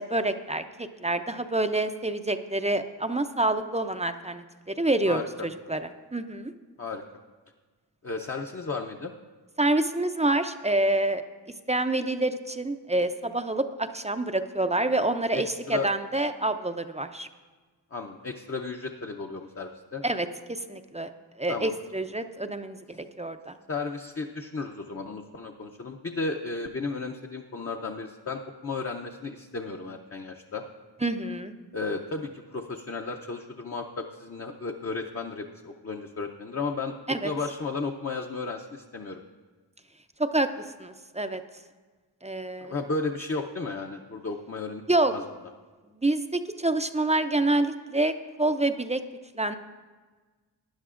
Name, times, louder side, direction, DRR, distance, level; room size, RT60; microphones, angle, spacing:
voice 1, 0.0-6.5 9.6-11.2 11.7-17.3 20.0-21.1 21.4-23.6 31.0-31.5 37.1-37.3 40.2-41.4 42.2-42.7 44.9-45.1 46.0-49.0 49.4-49.6, right 2 dB, 15° right, 8 dB, 0.4 m, -27 dB
voice 2, 8.0-9.1 15.3-15.9 17.9-20.0 21.5-21.7 23.7-30.6 31.7-36.9 37.2-39.2 42.6-44.8 45.1-45.2, left 3 dB, 30° left, 2 dB, 0.6 m, -34 dB
19.0 x 10.5 x 2.5 m, 1.4 s
wide cardioid pair, 95°, 45 cm